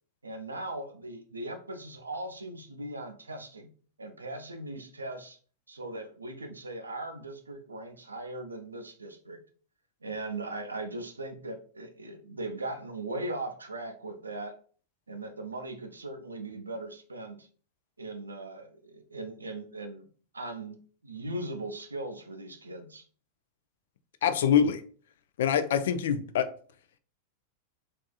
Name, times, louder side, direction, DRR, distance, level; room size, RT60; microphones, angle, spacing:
voice 1, 0.2-3.7 4.0-5.4 5.7-9.4 10.0-14.6 15.1-17.5 18.0-20.1 20.3-23.1, right 2 dB, 80° right, 0.5 m, -39 dB
voice 2, 24.2-24.8 25.4-26.5, left 8 dB, 60° left, 0.3 m, -24 dB
3.5 x 2.4 x 2.3 m
figure-of-eight pair, 90°, 0 cm